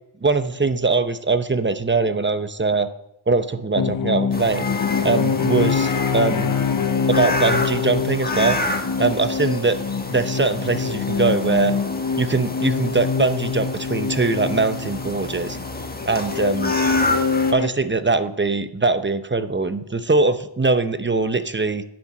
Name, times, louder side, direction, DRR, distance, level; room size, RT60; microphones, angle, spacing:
voice 1, 0.2-2.9 3.3-4.6 5.0-6.6 7.1-8.6 9.0-9.8 10.1-11.7 12.2-15.6 16.1-16.7 17.5-21.8, right 3 dB, 25° right, 10 dB, 0.8 m, -21 dB
sound 1, 3.8-17.7, left 6 dB, 45° left, 0.6 m, -25 dB
sound 2, 4.3-17.5, left 2 dB, 20° left, 1.4 m, -29 dB
10.5 x 7.4 x 7.4 m, 0.77 s
wide cardioid pair, 90°, 47 cm